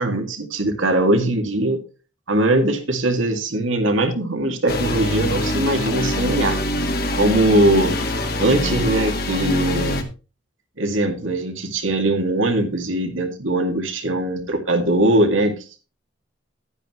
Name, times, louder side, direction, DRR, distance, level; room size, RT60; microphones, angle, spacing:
voice 1, 0.0-1.8 2.3-6.6 7.1-7.9 8.4-10.1 10.8-15.5, right 1 dB, 90° right, 4 dB, 2.2 m, -20 dB
sound 1, 4.7-10.0, left 1 dB, 50° left, 1.6 m, -24 dB
11.0 x 9.7 x 3.1 m, 0.33 s
head